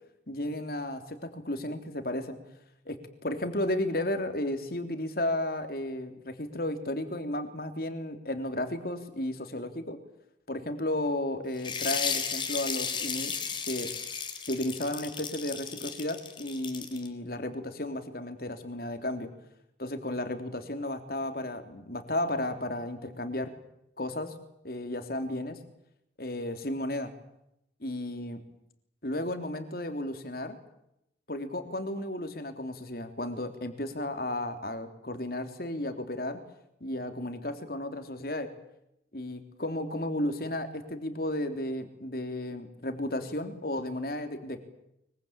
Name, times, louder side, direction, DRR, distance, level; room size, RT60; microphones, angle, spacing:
voice 1, 0.3-2.4 2.9-10.0 10.5-13.3 13.7-13.9 14.5-19.3 19.8-23.5 24.0-24.3 24.6-25.6 26.2-27.1 27.8-28.4 29.0-30.6 31.3-36.4 36.8-38.5 39.1-44.6, left 1 dB, 55° left, 8 dB, 3.5 m, -33 dB
sound 1, 11.6-17.1, left 6 dB, 25° left, 3.4 m, -34 dB
24.0 x 23.5 x 8.9 m, 0.80 s
head